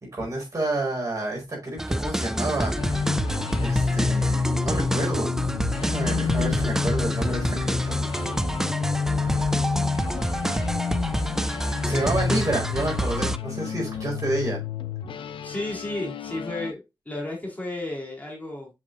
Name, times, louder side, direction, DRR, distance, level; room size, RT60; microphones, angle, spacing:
voice 1, 0.1-2.7 3.6-5.3 5.8-8.0 9.1-9.7 11.8-14.6, right 2 dB, 40° right, 4.8 m, -29 dB
sound 1, 1.8-13.4, equal, 5° right, 0.4 m, -28 dB
sound 2, 2.7-16.7, left 5 dB, 90° left, 0.6 m, -29 dB
voice 2, 15.4-18.7, left 2 dB, 20° left, 3.5 m, -33 dB
7.4 x 5.9 x 2.6 m
wide cardioid pair, 95°, 9 cm